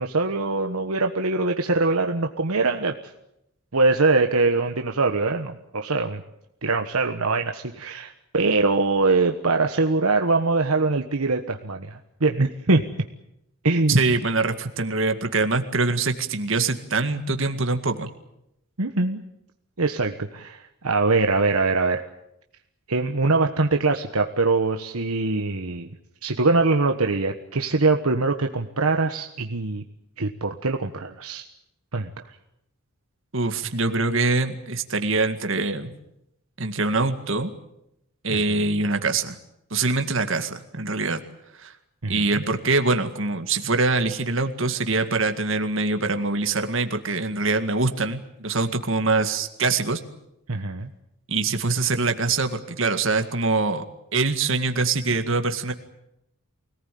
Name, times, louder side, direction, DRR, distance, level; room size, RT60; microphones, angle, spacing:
voice 1, 0.0-2.9 3.7-6.2 6.6-12.8 13.6-14.0 18.8-19.2 19.8-22.1 22.9-25.9 26.2-29.8 30.2-31.5 31.9-32.1 38.3-38.4 42.0-42.4 50.5-50.9, right 3 dB, 75° right, 4 dB, 1.3 m, -23 dB
voice 2, 13.9-18.1 33.3-35.9 36.6-37.5 38.2-39.4 39.7-41.2 41.6-41.7 42.1-50.0 51.3-53.8 54.1-55.7, right 3 dB, 60° right, 7 dB, 2.1 m, -24 dB
25.0 x 18.5 x 9.4 m, 0.83 s
head